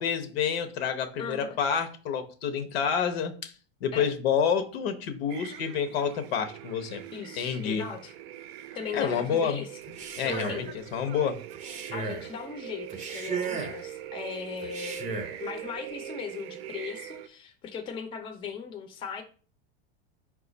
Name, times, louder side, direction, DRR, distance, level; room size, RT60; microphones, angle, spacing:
voice 1, 0.0-3.5 3.8-7.0 7.4-7.8 8.9-9.6 10.2-10.7 10.9-11.4, left 7 dB, 85° left, 7 dB, 0.8 m, -28 dB
voice 2, 1.2-1.6 3.9-4.1 7.1-8.1 8.7-9.7 10.2-10.7 11.9-19.2, left 6 dB, 15° left, 5 dB, 0.4 m, -38 dB
sound 1, 5.3-17.3, right 11 dB, 80° right, 0.5 m, -42 dB
Male speech man speaking, 9.8-10.7 11.5-12.3 12.9-13.9 14.6-15.4, right 4 dB, 25° right, 0.6 m, -35 dB
4.6 x 2.4 x 3.9 m, 0.40 s
supercardioid pair, 145°, 30 cm